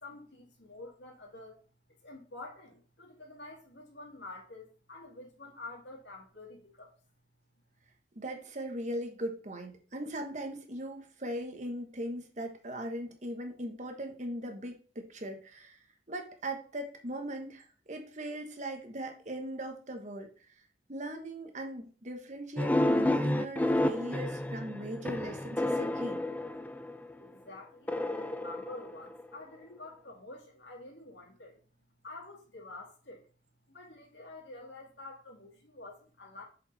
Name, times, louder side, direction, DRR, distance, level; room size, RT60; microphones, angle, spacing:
voice 1, 0.0-1.6 2.0-6.9 27.2-31.7 32.0-33.3 33.7-36.4, left 2 dB, 70° left, 2.5 m, -48 dB
voice 2, 8.1-15.8 16.1-20.5 20.9-26.2, right 1 dB, 40° right, 1.3 m, -39 dB
sound 1, 22.6-27.1 27.9-29.4, left 1 dB, 10° left, 0.4 m, -30 dB
7.1 x 5.1 x 4.1 m
head